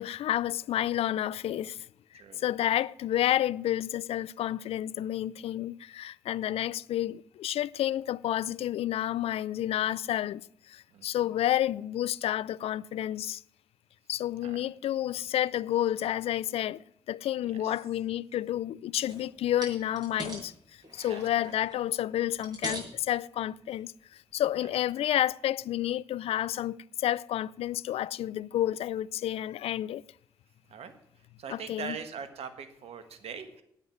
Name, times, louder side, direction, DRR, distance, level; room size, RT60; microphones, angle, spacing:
voice 1, 0.0-1.9 2.4-13.4 14.1-20.5 20.9-30.0 31.5-32.0, left 12 dB, 65° left, 0.4 m, -30 dB
voice 2, 10.9-11.3 14.4-14.6 17.4-17.7 21.1-21.5 30.7-30.9 31.4-33.6, right 7 dB, 70° right, 1.5 m, -42 dB
sound 1, 19.1-19.3 19.6-20.5 20.8-21.8 22.3-23.0 23.7-23.8 24.3-24.4, right 1 dB, 40° right, 6.2 m, -41 dB
9.5 x 8.0 x 9.4 m
hypercardioid pair, 45°, 11 cm